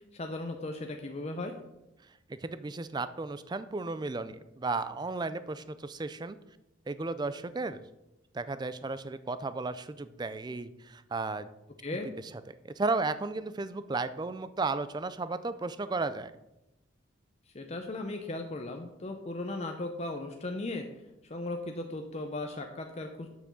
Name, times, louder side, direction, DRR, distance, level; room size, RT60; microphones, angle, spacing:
voice 1, 0.0-1.5 11.8-12.1 17.5-20.9 21.3-23.3, left 2 dB, 30° left, 4 dB, 0.6 m, -37 dB
voice 2, 2.3-6.4 6.9-7.8 8.3-11.5 12.5-16.3, right 3 dB, 20° right, 13 dB, 0.4 m, -34 dB
6.1 x 6.0 x 6.9 m, 0.93 s
head